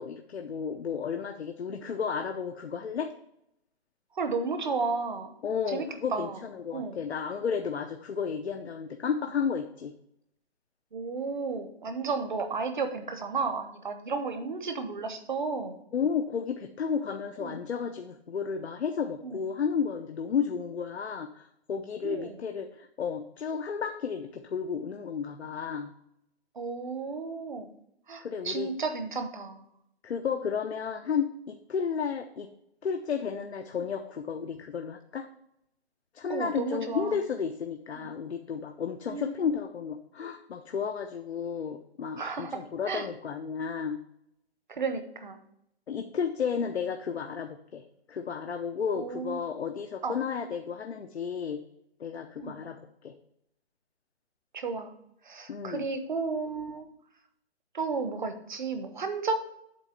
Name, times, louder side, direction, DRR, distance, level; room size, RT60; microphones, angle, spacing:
voice 1, 0.0-3.1 5.4-9.9 15.9-25.9 28.2-28.7 30.0-32.5 32.8-35.3 36.1-44.0 45.9-47.8 48.1-51.6 52.0-53.1 55.5-55.9, left 6 dB, 85° left, 5 dB, 0.8 m, -32 dB
voice 2, 4.2-5.3 5.7-6.4 6.7-7.0 10.9-15.8 16.9-17.1 17.4-17.6 19.2-19.4 22.0-22.4 26.6-27.7 28.1-29.7 36.3-37.2 37.9-38.1 39.1-39.5 42.2-43.1 44.7-45.4 48.9-49.4 50.0-50.2 52.4-52.6 54.5-54.9 55.2-56.9 57.7-59.3, right 4 dB, 50° right, 8 dB, 1.0 m, -33 dB
8.1 x 3.2 x 6.5 m, 0.77 s
hypercardioid pair, 175°, 32 cm